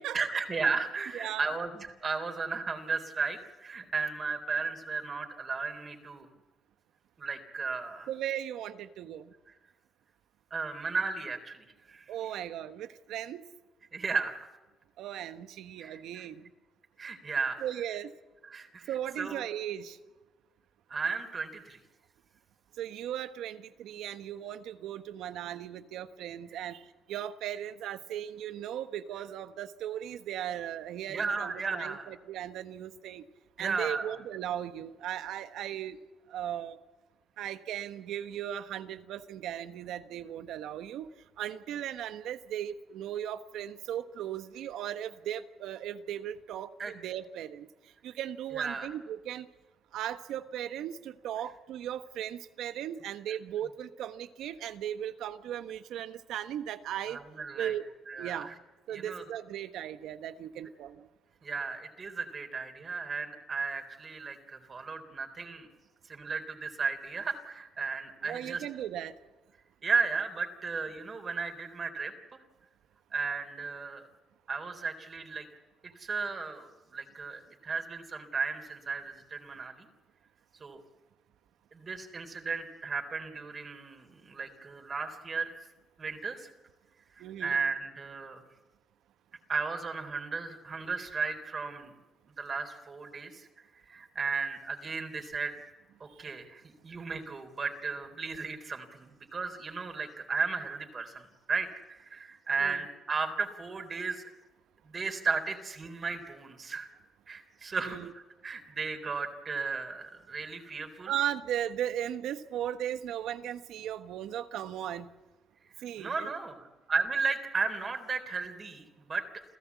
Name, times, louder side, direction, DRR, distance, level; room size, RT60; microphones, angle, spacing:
voice 1, 0.1-6.3 7.2-8.1 9.5-9.6 10.5-12.1 13.9-14.3 15.8-16.3 17.0-17.6 18.5-19.5 20.9-21.8 31.1-32.1 33.6-34.2 46.8-46.9 48.5-48.9 57.1-57.7 58.1-58.6 58.9-59.2 61.4-65.7 66.1-68.6 69.8-72.4 73.1-74.1 74.5-75.5 75.8-79.9 80.6-80.8 81.7-85.5 86.0-86.5 87.1-88.4 89.5-91.9 92.4-95.5 96.2-104.2 104.8-106.9 107.3-108.0 108.4-111.1 116.0-119.3, right 4 dB, 40° right, 5 dB, 3.8 m, -35 dB
voice 2, 1.1-1.5 8.1-9.3 12.1-13.4 15.0-16.5 17.6-18.1 18.9-20.0 22.8-26.8 27.1-33.2 33.6-36.0 36.3-36.8 37.4-41.1 41.4-47.7 48.0-49.5 49.9-57.2 57.5-57.8 58.2-58.5 58.9-61.1 68.2-69.1 87.2-87.5 96.2-96.3 102.6-102.8 107.8-108.1 111.1-115.1 115.8-116.3, right 11 dB, 85° right, 11 dB, 1.3 m, -37 dB
29.0 x 15.5 x 8.4 m, 1.2 s
cardioid pair, 90°, 0 cm